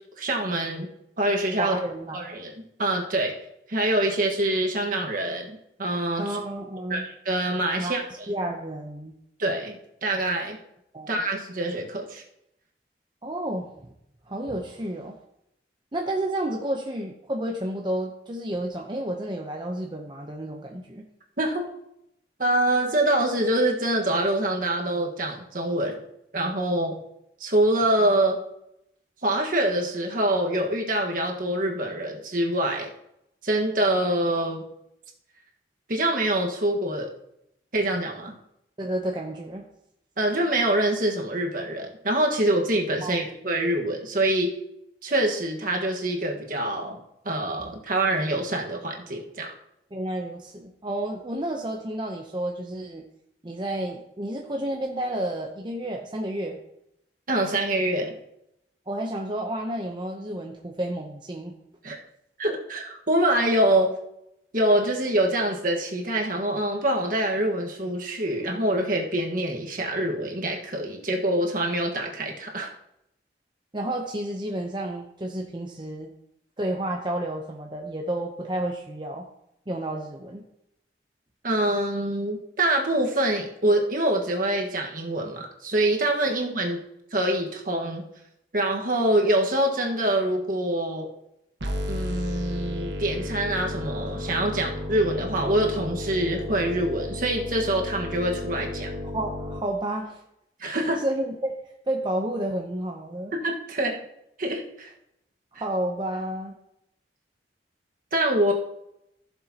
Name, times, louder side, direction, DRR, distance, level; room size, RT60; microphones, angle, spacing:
voice 1, 0.2-0.9 1.2-1.8 2.1-2.5 2.8-3.3 3.7-6.4 6.9-8.3 9.4-10.6 11.1-12.2 21.4-21.7 22.4-26.0 26.3-27.0 27.4-28.4 29.2-32.9 33.4-34.6 35.9-37.1 37.7-38.3 40.2-44.5 45.0-47.0 47.2-49.5 57.3-58.1 61.8-62.0 62.4-63.9 64.5-72.7 81.4-86.8 87.1-88.1 88.5-91.1 91.9-98.9 100.6-101.0 103.3-104.0 104.4-104.9 108.1-108.5, right 1 dB, 50° right, 1 dB, 1.5 m, -25 dB
voice 2, 1.6-2.2 6.2-7.1 7.8-8.0 8.3-9.1 10.9-11.1 13.2-13.9 14.3-15.1 15.9-21.0 38.8-39.7 43.0-43.2 49.9-53.0 53.4-56.6 58.9-61.5 73.7-76.1 76.6-79.3 79.7-80.4 99.0-100.2 100.7-101.5 101.9-103.3 105.5-106.6, right 1 dB, 25° right, 1 dB, 0.7 m, -31 dB
sound 1, 91.6-99.6, left 1 dB, 80° right, 1.4 m, -33 dB
15.5 x 7.0 x 2.9 m, 0.81 s
head